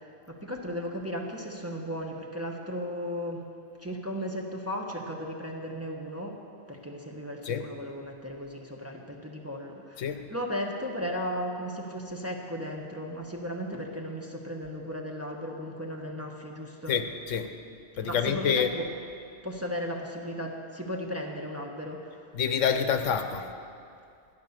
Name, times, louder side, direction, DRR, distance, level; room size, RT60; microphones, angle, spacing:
voice 1, 0.3-3.4 3.8-6.4 6.7-17.0 18.0-18.9 19.4-22.3, equal, 15° right, -1 dB, 1.1 m, -35 dB
voice 2, 16.9-17.5 18.0-18.7 22.3-23.5, left 7 dB, 90° left, 8 dB, 1.2 m, -27 dB
12.5 x 10.5 x 6.6 m, 2.4 s
omnidirectional pair, 1.3 m